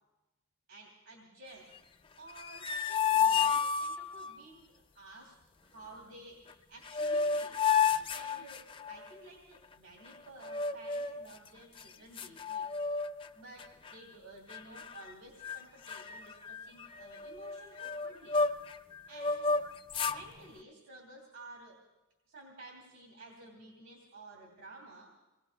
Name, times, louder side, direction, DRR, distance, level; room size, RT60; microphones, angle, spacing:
voice 1, 0.7-1.7 2.2-5.4 5.6-7.6 8.1-12.7 13.3-18.4 19.1-19.7 20.0-21.8 22.3-25.1, right 2 dB, 75° right, -1 dB, 3.0 m, -53 dB
sound 1, 2.3-4.3 6.5-6.6 6.9-9.1 10.4-11.2 11.8-11.9 12.2-13.3 13.6-13.9 14.5-15.1 15.4-15.6 15.9-18.8 19.1-20.2, left 6 dB, 25° left, 0.4 m, -31 dB
27.5 x 20.0 x 2.3 m, 1.1 s
head